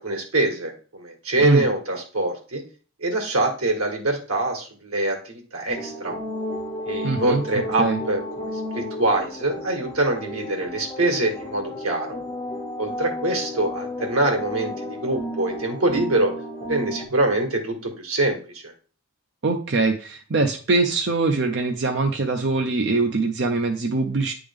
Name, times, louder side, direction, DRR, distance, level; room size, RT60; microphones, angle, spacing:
voice 1, 0.0-2.6 3.0-6.1 6.8-12.2 12.8-16.3 16.7-18.7, right 2 dB, 85° right, 2 dB, 1.8 m, -24 dB
sound 1, 5.7-17.1, left 1 dB, 20° left, 1.9 m, -33 dB
voice 2, 7.0-7.4 7.8-8.0 19.4-24.3, right 3 dB, 55° right, 4 dB, 0.6 m, -22 dB
9.6 x 3.5 x 3.5 m, 0.38 s
head